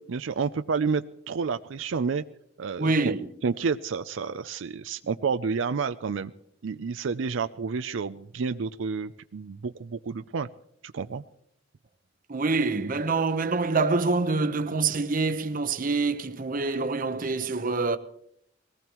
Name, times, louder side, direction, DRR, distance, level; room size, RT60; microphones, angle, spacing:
voice 1, 0.1-2.2 2.6-3.1 3.4-6.3 6.6-10.5 10.8-11.2, right 5 dB, 80° right, 0.5 m, -30 dB
voice 2, 2.8-3.3 12.3-18.0, right 3 dB, 45° right, 0.9 m, -26 dB
21.5 x 18.5 x 3.0 m
head